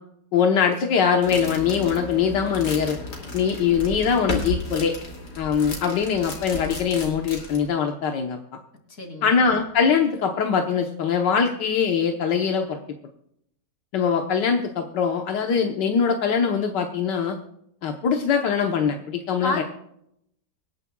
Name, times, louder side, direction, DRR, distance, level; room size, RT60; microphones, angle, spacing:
voice 1, 0.3-3.0 3.3-5.0 5.4-8.4 9.2-12.8 13.9-17.4 17.8-19.6, left 6 dB, 85° left, 3 dB, 1.7 m, -22 dB
sound 1, 1.2-7.7, left 2 dB, 65° left, 3.2 m, -34 dB
voice 2, 8.9-9.4 19.4-19.6, left 2 dB, 50° left, 3 dB, 3.0 m, -29 dB
25.0 x 11.0 x 2.3 m, 0.73 s
omnidirectional pair, 1.8 m